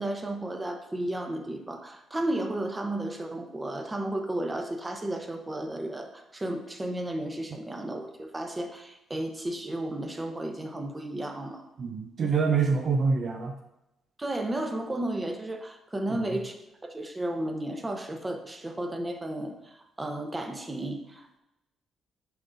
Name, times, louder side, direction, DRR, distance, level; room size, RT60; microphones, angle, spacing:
voice 1, 0.0-11.6 14.2-16.6 16.9-21.4, right 1 dB, 20° right, 4 dB, 0.9 m, -33 dB
voice 2, 11.8-13.5 16.1-16.3, right 5 dB, 50° right, 4 dB, 0.5 m, -26 dB
10.0 x 3.8 x 2.7 m, 0.90 s
cardioid pair, 90°, 0 cm